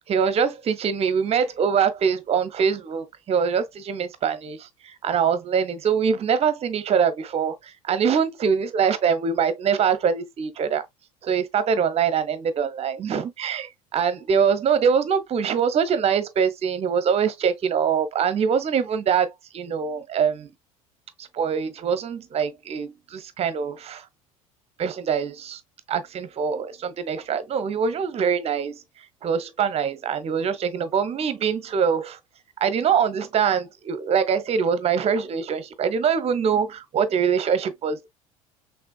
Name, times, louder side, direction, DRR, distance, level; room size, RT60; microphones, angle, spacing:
voice 1, 0.1-10.9 11.2-19.3 19.5-20.5 21.2-24.0 24.8-25.6 25.9-28.8 29.2-32.2 32.6-38.1, right 7 dB, 35° right, 0.8 m, -23 dB
5.9 x 2.6 x 2.2 m
figure-of-eight pair, 65°, 18 cm